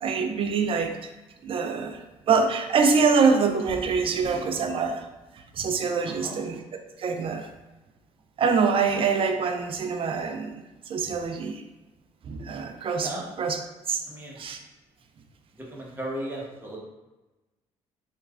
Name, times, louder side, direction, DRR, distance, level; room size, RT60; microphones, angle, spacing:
voice 1, 0.0-0.9 1.4-2.0 2.3-5.1 5.5-6.6 7.0-7.5 8.4-10.6 10.9-11.6 12.2-13.1 13.4-13.6 13.9-14.0 14.4-14.6, right 5 dB, 45° right, 6 dB, 0.4 m, -24 dB
voice 2, 6.0-6.4 13.0-13.2 14.1-14.4 15.5-16.8, right 1 dB, 15° right, -3 dB, 0.9 m, -36 dB
3.1 x 2.3 x 2.3 m, 1.1 s
supercardioid pair, 70°, 13 cm